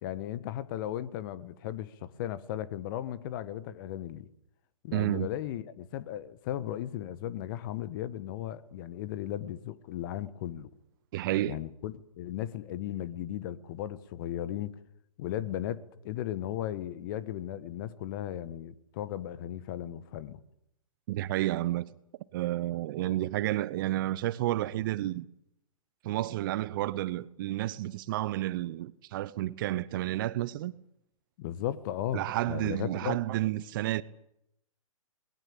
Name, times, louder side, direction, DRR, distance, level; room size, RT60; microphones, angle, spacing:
voice 1, 0.0-4.3 4.8-10.7 11.4-14.7 15.2-20.4 31.4-33.2, left 12 dB, 35° left, 1.5 m, -36 dB
voice 2, 4.9-5.3 11.1-11.6 21.1-21.9 22.3-25.3 26.0-30.7 32.1-34.0, right 15 dB, 35° right, 0.8 m, -31 dB
21.0 x 20.5 x 8.7 m
figure-of-eight pair, 125°, 18 cm